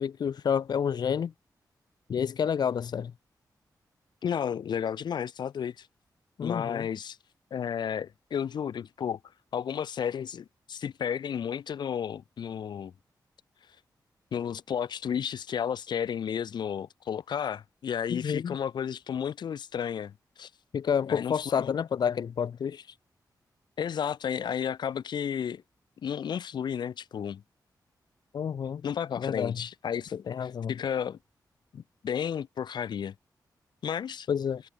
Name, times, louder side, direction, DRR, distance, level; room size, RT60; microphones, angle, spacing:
voice 1, 0.0-1.3 2.1-3.1 6.4-6.9 18.1-18.6 20.7-22.8 28.3-28.8 29.2-29.6 30.3-30.7 34.3-34.6, left 7 dB, 70° left, 3.9 m, -29 dB
voice 2, 4.2-5.9 6.4-7.2 7.5-9.2 9.5-12.9 14.3-20.5 21.1-21.8 23.8-25.6 26.0-27.4 28.8-30.1 30.4-31.2 31.7-33.1 33.8-34.3, left 8 dB, 90° left, 1.8 m, -32 dB
wide cardioid pair, 180°, 7 cm